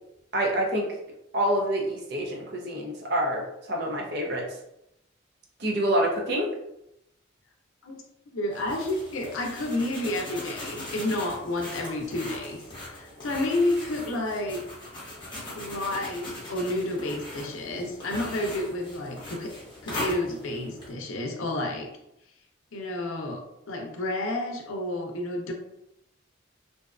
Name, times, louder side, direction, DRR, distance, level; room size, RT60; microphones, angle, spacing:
voice 1, 0.3-1.0 1.3-4.5 5.6-6.5, right 1 dB, 50° right, -1 dB, 0.5 m, -27 dB
voice 2, 8.3-12.6 12.9-14.6 15.6-19.5 19.8-21.9 22.7-25.5, left 1 dB, 80° left, 2 dB, 0.5 m, -30 dB
sound 1, 8.5-20.9, left 1 dB, 25° left, 0.7 m, -40 dB
2.6 x 2.2 x 2.3 m, 0.82 s
head